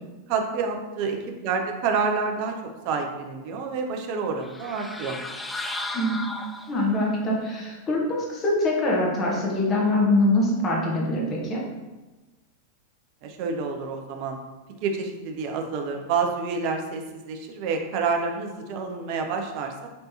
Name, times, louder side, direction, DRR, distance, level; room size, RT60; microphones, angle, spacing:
voice 1, 0.3-2.5 2.8-5.2 13.2-14.4 14.8-19.9, right 5 dB, 45° right, 3 dB, 0.6 m, -28 dB
sound 1, 4.4-7.1, left 2 dB, 10° left, 0.3 m, -35 dB
voice 2, 5.9-11.6, left 1 dB, 25° left, -3 dB, 1.0 m, -24 dB
5.3 x 3.3 x 2.8 m, 1.2 s
figure-of-eight pair, 90°, 0 cm